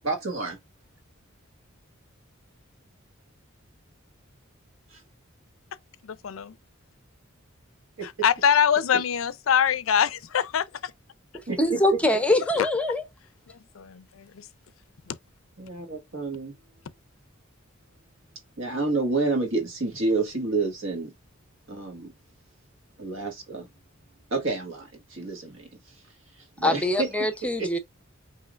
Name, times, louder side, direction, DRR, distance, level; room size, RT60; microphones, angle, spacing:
voice 1, 0.0-0.6 4.9-5.0 8.0-8.1 11.5-11.6 11.9-12.0 15.6-16.5 18.6-21.1 21.7-22.1 23.0-23.7 24.3-26.0 26.3-27.3 27.6-27.7, right 3 dB, 70° right, 1.5 m, -29 dB
voice 2, 6.0-6.6 8.0-10.9 12.6-12.7 13.5-14.5 15.1-15.2, left 8 dB, 70° left, 0.4 m, -24 dB
voice 3, 11.6-13.0 26.6-27.8, left 1 dB, 5° left, 0.6 m, -23 dB
5.5 x 2.8 x 2.3 m
head